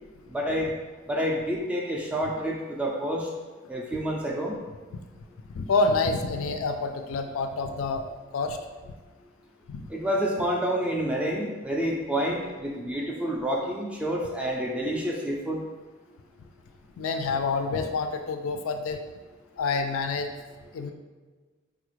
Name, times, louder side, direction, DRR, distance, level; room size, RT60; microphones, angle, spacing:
voice 1, 0.3-0.7 1.1-3.3 3.7-4.6 9.9-15.6, equal, 5° right, -2 dB, 0.3 m, -28 dB
voice 2, 5.5-8.0 8.3-8.6 9.7-9.8 17.0-19.0 19.6-20.3 20.7-20.9, left 3 dB, 80° left, 6 dB, 0.4 m, -27 dB
3.9 x 2.4 x 3.1 m, 1.4 s
head